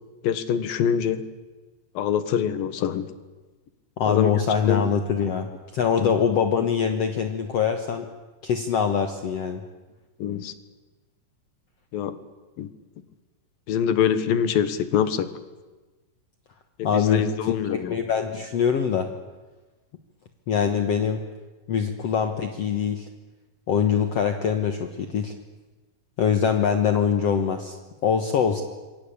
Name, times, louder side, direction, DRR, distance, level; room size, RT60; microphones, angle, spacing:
voice 1, 0.2-1.2 1.9-3.1 4.1-4.3 4.7-4.8 6.0-6.1 10.2-10.5 11.9-12.2 12.6-12.7 13.7-15.3 16.8-18.0, left 8 dB, 85° left, 12 dB, 3.3 m, -24 dB
voice 2, 4.0-8.1 8.4-9.6 16.8-17.2 17.7-19.1 20.5-21.2 21.7-23.1 23.7-25.3 26.2-27.8 28.0-28.6, left 7 dB, 55° left, 6 dB, 2.1 m, -23 dB
26.5 x 23.0 x 8.7 m, 1.2 s
omnidirectional pair, 4.0 m